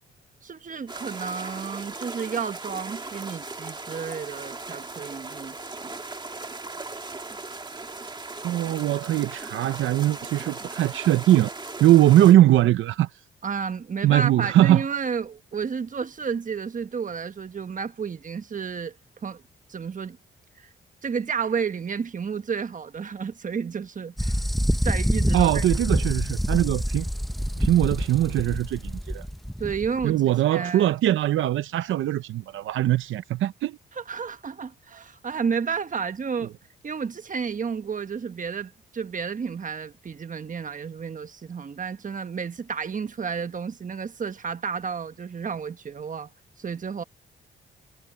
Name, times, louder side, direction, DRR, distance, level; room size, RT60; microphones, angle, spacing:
voice 1, 0.4-5.6 5.8-5.9 13.4-18.9 19.2-19.4 19.7-20.2 21.0-24.4 24.8-25.6 29.6-30.2 30.5-30.9 33.9-36.5 36.8-46.3 46.6-47.0, right 6 dB, 40° right, 1.3 m, -31 dB
sound 1, 0.9-12.3, right 3 dB, 20° right, 1.9 m, -38 dB
voice 2, 8.4-11.5 11.8-13.1 14.0-14.8 25.3-27.1 27.6-29.2 30.0-33.8, right 13 dB, 85° right, 0.7 m, -21 dB
sound 2, 24.2-30.0, equal, ahead, 0.9 m, -26 dB
cardioid pair, 75°, 20 cm